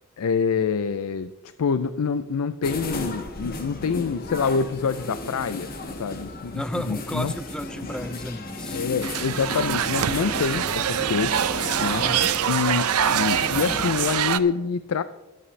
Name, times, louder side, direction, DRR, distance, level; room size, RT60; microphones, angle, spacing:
voice 1, 0.2-5.7 6.0-7.3 8.7-11.5 11.8-12.0 12.5-15.0, left 5 dB, 85° left, 13 dB, 0.4 m, -26 dB
sound 1, 2.6-14.2, left 2 dB, 40° left, 1.4 m, -34 dB
voice 2, 6.5-8.8 12.0-12.3, left 1 dB, 5° left, 13 dB, 0.4 m, -33 dB
sound 2, 9.0-14.4, right 9 dB, 85° right, 0.6 m, -24 dB
23.5 x 8.5 x 3.2 m, 1.1 s
head